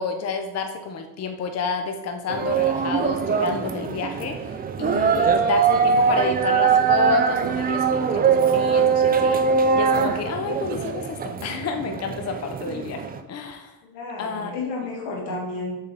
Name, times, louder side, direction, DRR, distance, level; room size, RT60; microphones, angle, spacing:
voice 1, 0.0-13.7 14.2-14.5, left 4 dB, 35° left, 5 dB, 0.7 m, -30 dB
sound 1, 2.3-13.2, right 6 dB, 25° right, 0.3 m, -22 dB
sound 2, 5.3-5.4 5.9-6.2 6.7-6.8 7.4-7.7 8.3-8.4 9.0-9.4 9.9-10.0 10.7-11.1, right 8 dB, 70° right, 0.7 m, -41 dB
voice 2, 13.8-15.8, left 3 dB, 90° left, -1 dB, 1.9 m, -31 dB
6.9 x 4.1 x 4.0 m, 1.1 s
cardioid pair, 110°, 43 cm